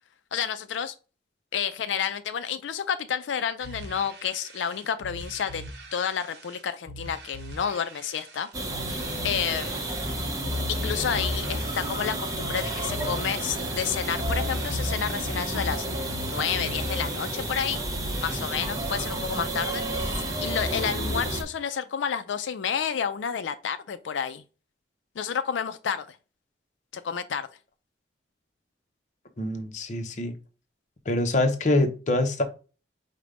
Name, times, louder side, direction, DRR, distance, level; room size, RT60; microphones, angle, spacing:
voice 1, 0.3-0.9 1.5-5.6 5.9-8.9 9.2-9.9 10.7-17.9 18.2-24.4 25.2-26.2 26.9-27.5, left 7 dB, 90° left, 0.4 m, -30 dB
sound 1, 3.6-18.4, right 2 dB, 60° right, 0.9 m, -43 dB
sound 2, 8.5-21.4, right 1 dB, 20° right, 0.8 m, -30 dB
voice 2, 29.4-30.3 31.1-32.4, left 2 dB, 40° left, 0.7 m, -25 dB
5.1 x 2.2 x 4.8 m
head